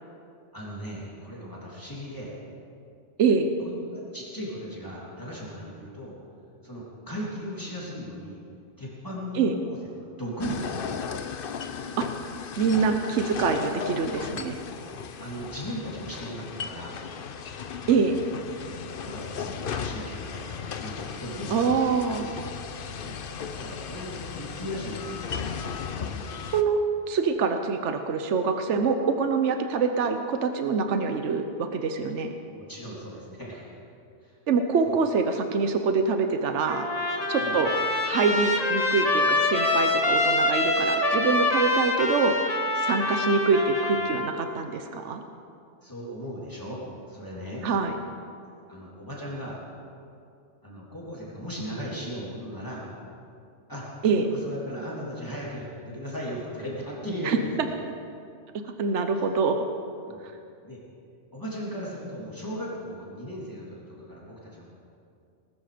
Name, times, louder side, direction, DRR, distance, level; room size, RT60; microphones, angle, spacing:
voice 1, 0.5-2.3 3.6-6.1 6.6-8.4 8.8-10.9 14.3-14.5 15.2-17.0 19.0-21.6 23.0-23.2 23.5-25.4 32.5-33.7 34.2-34.4 34.8-35.0 37.4-37.6 45.8-46.8 47.1-47.6 48.7-49.6 50.6-52.9 53.7-57.7 60.1-60.2 60.6-60.8 61.3-64.7, equal, 15° left, -6 dB, 3.2 m, -37 dB
voice 2, 3.2-3.5 9.3-9.5 12.0-12.1 12.6-14.6 17.9-18.2 21.5-22.3 26.5-32.3 34.5-36.9 37.3-37.8 38.0-42.4 42.8-45.2 47.6-48.0 54.0-54.3 57.2-57.4 58.8-59.6, right 5 dB, 75° right, 7 dB, 1.2 m, -25 dB
sound 1, 10.4-26.6, left 6 dB, 55° left, 0.9 m, -36 dB
Trumpet, 36.7-44.3, left 2 dB, 35° left, 1.4 m, -25 dB
19.5 x 13.5 x 5.1 m, 2.4 s
omnidirectional pair, 1.2 m